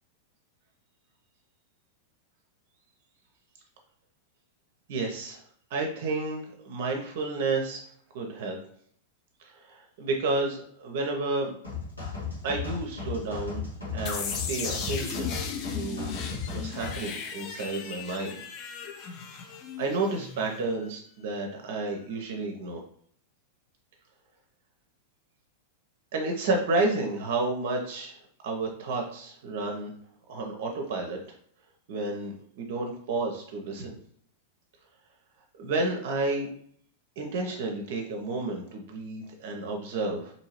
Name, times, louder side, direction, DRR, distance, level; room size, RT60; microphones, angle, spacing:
voice 1, 4.9-5.4 5.7-7.8 8.1-8.6 9.4-11.5 12.4-13.6 13.9-15.3 15.7-16.1 16.5-18.3 19.8-22.8 26.1-29.9 30.3-31.2 31.9-33.9 35.6-36.5 37.2-40.3, right 3 dB, 55° right, 2 dB, 0.5 m, -31 dB
sound 1, 11.6-17.0, left 5 dB, 80° left, 1.3 m, -35 dB
sound 2, 14.1-20.8, left 6 dB, 35° left, 0.4 m, -37 dB
2.7 x 2.7 x 2.9 m, 0.62 s
figure-of-eight pair, 95°, 0 cm